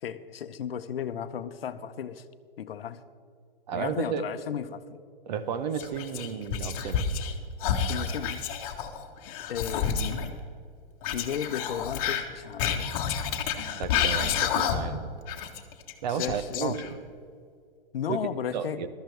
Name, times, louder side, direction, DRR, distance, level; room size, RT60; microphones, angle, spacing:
voice 1, 0.0-2.3 2.6-3.0 3.7-5.0 7.9-8.5 9.5-10.4 11.1-13.0 16.1-16.8 17.9-18.8, left 8 dB, 75° left, 12 dB, 0.8 m, -34 dB
voice 2, 3.7-4.3 5.3-7.1 13.8-15.1 16.0-16.8 18.1-18.3 18.5-18.9, right 7 dB, 45° right, 11 dB, 0.9 m, -32 dB
Whispering, 5.7-7.3 7.6-10.3 11.0-15.0 15.3-17.1, left 7 dB, 35° left, 1.3 m, -29 dB
15.0 x 12.5 x 3.4 m, 2.3 s
hypercardioid pair, 150°, 29 cm